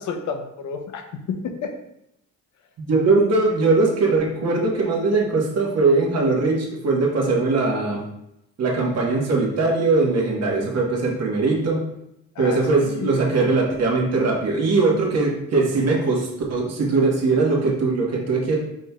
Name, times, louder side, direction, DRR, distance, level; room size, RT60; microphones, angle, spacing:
voice 1, 0.0-1.7 12.3-13.2, left 5 dB, 70° left, 5 dB, 0.7 m, -31 dB
voice 2, 2.8-8.0 8.6-11.8 12.4-18.6, right 3 dB, 55° right, -2 dB, 1.4 m, -20 dB
5.3 x 3.9 x 2.3 m, 0.82 s
cardioid pair, 90°, 30 cm